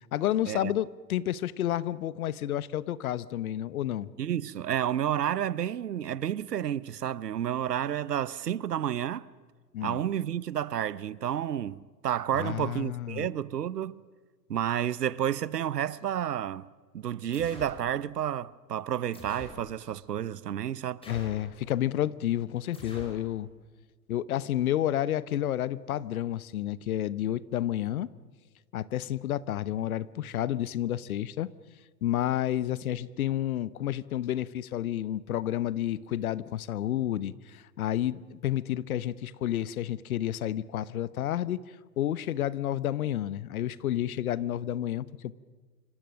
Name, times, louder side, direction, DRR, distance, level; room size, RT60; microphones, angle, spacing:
voice 1, 0.1-4.1 9.7-10.0 12.3-13.3 21.1-23.5 24.1-28.1 28.7-31.5 32.0-41.6 42.0-45.3, left 12 dB, 60° left, 1.1 m, -30 dB
voice 2, 4.2-9.3 9.8-14.0 14.5-16.7 16.9-21.1, right 10 dB, 70° right, 0.9 m, -30 dB
sound 1, 17.3-17.9 19.1-19.7 21.0-21.5 22.7-23.3, equal, 10° left, 6.0 m, -45 dB
27.0 x 25.5 x 6.4 m
figure-of-eight pair, 100°, 49 cm